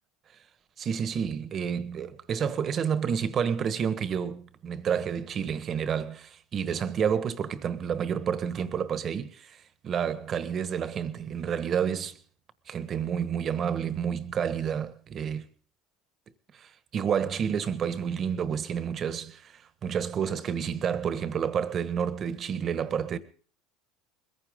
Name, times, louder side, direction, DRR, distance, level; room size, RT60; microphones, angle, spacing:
voice 1, 0.8-12.2 12.7-15.5 16.5-23.2, right 7 dB, 40° right, 1.3 m, -30 dB
21.5 x 15.0 x 3.7 m
supercardioid pair, 95°, 0 cm